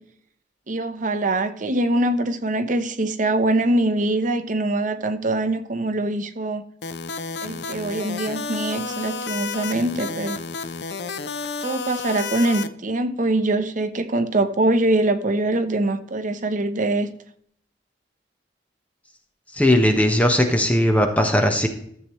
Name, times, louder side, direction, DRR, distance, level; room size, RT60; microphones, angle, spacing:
voice 1, 0.7-6.6 7.4-10.4 11.6-17.1, right 2 dB, 45° right, 9 dB, 0.9 m, -23 dB
sound 1, 6.8-12.7, left 4 dB, 65° left, 0.6 m, -31 dB
voice 2, 19.5-21.7, left 1 dB, 10° left, 4 dB, 1.1 m, -18 dB
13.5 x 7.6 x 3.2 m, 0.67 s
head